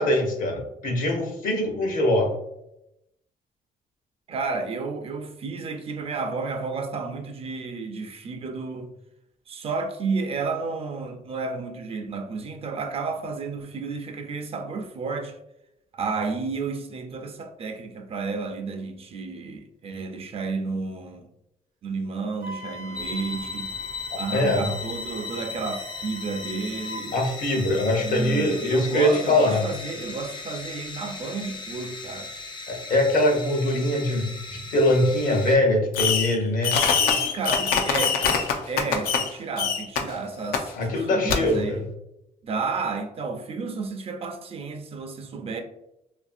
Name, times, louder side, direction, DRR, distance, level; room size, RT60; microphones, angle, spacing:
voice 1, 0.0-2.3 24.1-24.7 27.1-29.6 32.7-36.8 40.8-41.8, left 1 dB, 65° left, 0.7 m, -23 dB
voice 2, 4.3-8.9 9.5-15.4 15.9-21.3 21.8-23.7 24.2-27.1 28.0-32.3 36.7-41.9 42.4-45.6, right 4 dB, 40° right, 0.4 m, -32 dB
Wind instrument woodwind instrument, 22.4-27.1, right 1 dB, 80° right, 0.7 m, -42 dB
sound 1, 22.9-35.6, left 4 dB, 30° left, 0.4 m, -37 dB
Fireworks, 35.9-36.4 36.6-39.3 39.6-40.0 40.5-40.6 41.3-41.4, left 6 dB, 90° left, 0.4 m, -23 dB
2.7 x 2.5 x 2.5 m
cardioid pair, 95°, 15 cm